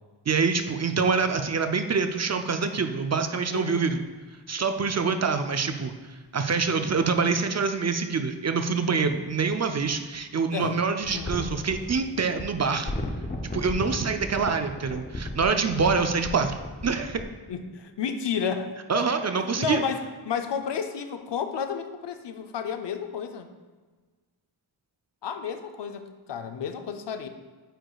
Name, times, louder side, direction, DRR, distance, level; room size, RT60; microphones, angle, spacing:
voice 1, 0.3-4.0 4.5-5.9 6.3-12.9 13.5-16.5 16.8-17.2 18.9-19.8, right 5 dB, 40° right, 7 dB, 0.4 m, -25 dB
voice 2, 3.5-3.9 10.5-10.7 11.1-11.5 17.5-19.0 19.4-23.5 25.2-27.3, left 7 dB, 70° left, 8 dB, 0.6 m, -32 dB
sound 1, 6.7-6.8 9.0-10.2 11.0-17.3, left 1 dB, 20° left, 0.6 m, -35 dB
8.9 x 4.7 x 2.3 m, 1.4 s
wide cardioid pair, 65°, 43 cm